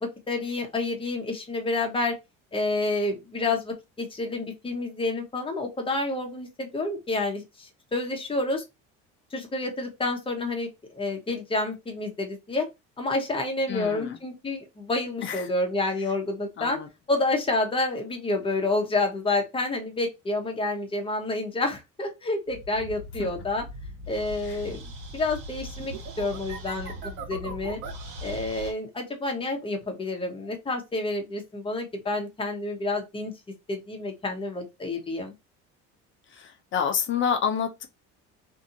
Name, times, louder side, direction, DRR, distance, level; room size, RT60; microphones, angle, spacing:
voice 1, 0.0-2.2 2.5-8.6 9.3-12.7 13.0-16.8 17.1-23.6 24.1-27.8 28.2-33.3 33.7-35.3, left 2 dB, 15° left, 0.9 m, -29 dB
voice 2, 13.7-14.2 15.2-15.5 16.6-16.9 23.2-23.3 24.5-24.6 36.3-37.9, left 7 dB, 40° left, 0.6 m, -28 dB
sound 1, 22.5-28.7, right 1 dB, 85° right, 1.3 m, -39 dB
2.7 x 2.6 x 2.6 m
cardioid pair, 125°, 30 cm